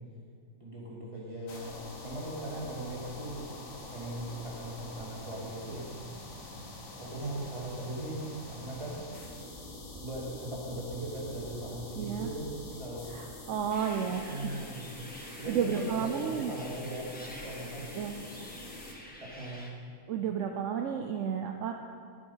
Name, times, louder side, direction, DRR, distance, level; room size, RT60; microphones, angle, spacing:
voice 1, 0.6-3.5 3.9-5.9 7.0-9.0 10.0-13.1 14.1-14.9 15.3-17.9 19.2-19.7, right 1 dB, 25° right, -5 dB, 2.9 m, -39 dB
sound 1, 1.5-18.9, left 2 dB, 80° left, 1.9 m, -46 dB
voice 2, 12.0-12.3 13.1-14.6 15.2-16.5 17.9-18.1 20.1-21.7, right 7 dB, 70° right, 4 dB, 1.0 m, -32 dB
sound 2, 13.7-19.7, equal, 5° left, 1.3 m, -49 dB
10.5 x 9.9 x 5.7 m, 2.2 s
omnidirectional pair, 1.4 m